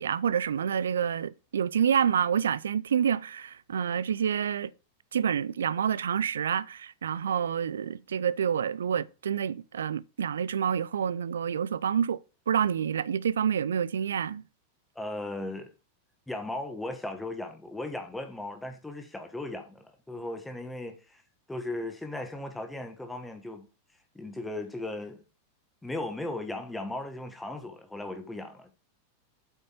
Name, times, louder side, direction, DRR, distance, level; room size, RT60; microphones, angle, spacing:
voice 1, 0.0-4.7 5.1-12.2 12.5-14.4, right 8 dB, 65° right, 0.4 m, -28 dB
voice 2, 14.9-15.7 16.3-21.2 21.5-23.7 24.1-25.2 25.8-28.7, left 2 dB, 5° left, 1.3 m, -37 dB
8.3 x 5.3 x 5.0 m
figure-of-eight pair, 90°, 0 cm